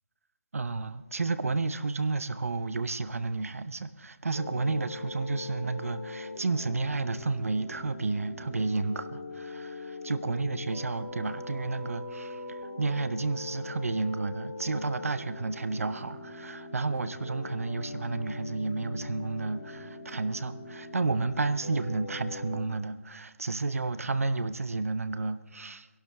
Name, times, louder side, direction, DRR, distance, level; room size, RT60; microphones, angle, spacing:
voice 1, 0.5-25.9, right 3 dB, 70° right, 0.8 m, -31 dB
sound 1, 4.3-22.7, left 2 dB, 80° left, 4.9 m, -41 dB
22.5 x 11.5 x 3.6 m
hypercardioid pair, 175°, 8 cm